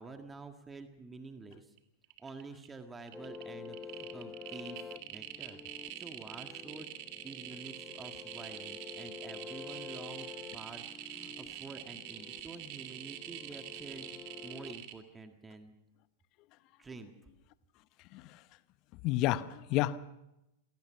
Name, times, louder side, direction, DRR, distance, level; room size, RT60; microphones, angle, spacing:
voice 1, 0.0-1.8 2.2-5.6 6.0-10.3 10.5-14.1 14.4-15.7 16.8-17.1, right 3 dB, 15° right, 6 dB, 1.8 m, -49 dB
sound 1, 1.5-1.8 2.0-2.7 3.0-14.9, right 13 dB, 50° right, 2.3 m, -45 dB
sound 2, 3.1-14.8, left 6 dB, 15° left, 1.1 m, -49 dB
voice 2, 19.0-20.0, left 15 dB, 45° left, 15 dB, 1.0 m, -30 dB
27.5 x 17.5 x 5.8 m, 0.90 s
figure-of-eight pair, 95°, 0 cm